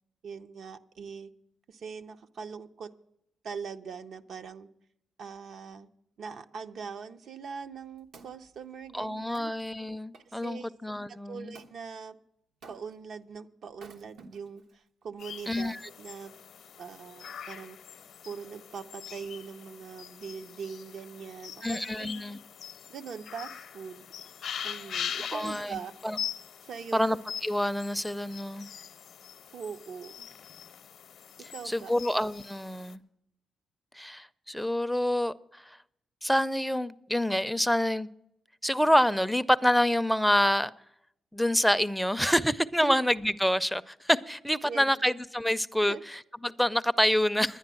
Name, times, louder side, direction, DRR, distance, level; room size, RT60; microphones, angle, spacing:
voice 1, 0.2-1.3 1.7-2.9 3.4-4.7 5.2-5.9 6.2-9.5 10.3-10.7 11.1-12.2 12.7-16.3 16.8-17.8 18.2-22.2 22.9-24.1 24.6-25.9 26.6-27.1 29.5-30.3 31.5-32.0 42.8-43.0 44.6-45.1 45.8-46.0, right 6 dB, 65° right, 0.6 m, -42 dB
Wood, 7.5-10.5 11.6-11.8 12.6-13.1 13.7-14.7 15.4-15.5, right 4 dB, 85° right, 1.1 m, -54 dB
voice 2, 8.9-11.5 15.5-15.8 21.6-22.4 25.3-25.8 26.0-26.2 26.9-27.2 27.4-28.7 31.7-33.0 34.0-35.6 36.2-38.1 38.6-40.7 41.3-47.6, equal, ahead, 0.4 m, -27 dB
sound 1, 15.2-32.9, left 8 dB, 70° left, 0.6 m, -42 dB
10.5 x 10.0 x 7.6 m
cardioid pair, 105°, 0 cm